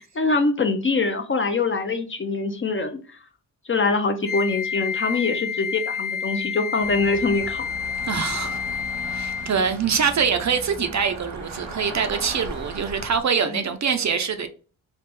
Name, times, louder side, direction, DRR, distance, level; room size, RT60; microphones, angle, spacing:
voice 1, 0.2-3.0 3.7-7.7 13.5-13.6, left 3 dB, 30° left, 0.4 m, -23 dB
Wind instrument woodwind instrument, 4.2-9.6, left 7 dB, 45° left, 1.2 m, -29 dB
sound 1, 6.8-13.2, right 2 dB, 90° right, 1.2 m, -37 dB
voice 2, 8.1-8.6 9.1-14.5, right 6 dB, 40° right, 0.5 m, -24 dB
3.2 x 2.5 x 3.3 m
cardioid pair, 75°, 45 cm